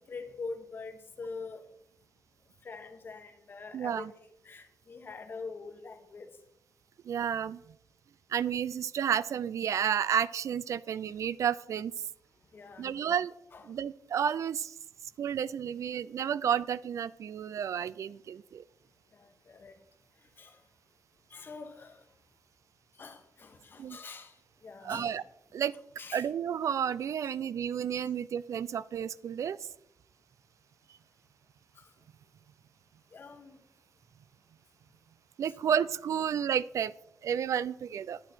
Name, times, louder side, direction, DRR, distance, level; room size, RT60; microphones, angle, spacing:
voice 1, 0.0-1.7 2.6-4.1 4.4-6.4 12.5-13.0 13.5-13.7 19.1-19.8 20.4-20.6 21.3-22.0 23.0-24.4 24.6-25.2 26.0-26.3 27.2-27.3 31.8-31.9 33.1-33.6 35.5-35.6, left 4 dB, 35° left, 1.2 m, -44 dB
voice 2, 3.7-4.1 7.1-7.6 8.3-11.9 12.8-13.3 13.7-14.7 15.2-18.6 23.8-24.0 24.8-25.2 25.5-25.7 26.1-29.6 35.4-36.9 37.2-38.2, right 8 dB, 60° right, 0.3 m, -31 dB
11.5 x 9.4 x 4.5 m
wide cardioid pair, 180°, 6 cm